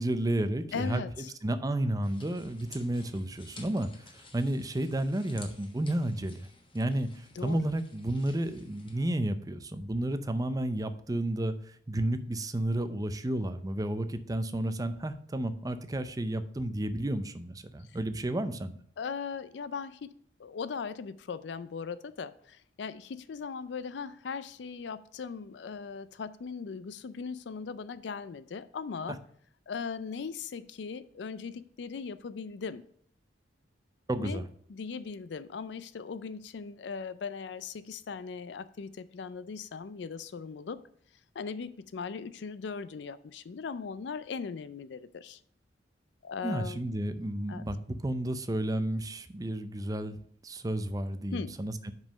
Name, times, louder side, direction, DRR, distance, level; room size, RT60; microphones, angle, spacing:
voice 1, 0.0-1.0 1.4-6.5 6.7-11.5 11.9-18.8 34.1-34.4 46.4-47.8 48.0-50.2 50.4-51.9, right 1 dB, 20° right, 0.5 m, -32 dB
voice 2, 0.7-1.3 7.4-7.6 19.0-20.1 20.4-29.2 29.7-32.8 34.2-34.4 34.7-40.8 41.3-45.4 46.2-46.8 47.5-47.6 51.3-51.5, left 5 dB, 65° left, 0.4 m, -39 dB
sound 1, 2.0-9.2, left 3 dB, 30° left, 1.2 m, -54 dB
5.4 x 5.2 x 6.1 m
head